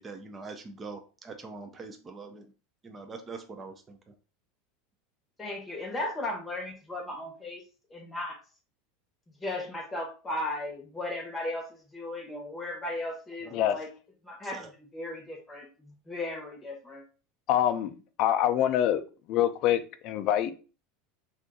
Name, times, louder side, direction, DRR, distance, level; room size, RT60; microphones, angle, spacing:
voice 1, 0.0-2.5 2.8-4.1 13.4-13.6 14.4-14.7, right 4 dB, 20° right, 6 dB, 0.4 m, -43 dB
voice 2, 5.4-7.6 7.9-8.4 9.4-13.9 14.2-17.0, left 2 dB, 10° left, 1 dB, 0.8 m, -36 dB
voice 3, 17.5-19.0 19.3-20.5, left 11 dB, 45° left, 9 dB, 0.4 m, -25 dB
2.5 x 2.3 x 3.8 m, 0.35 s
supercardioid pair, 140°, 0 cm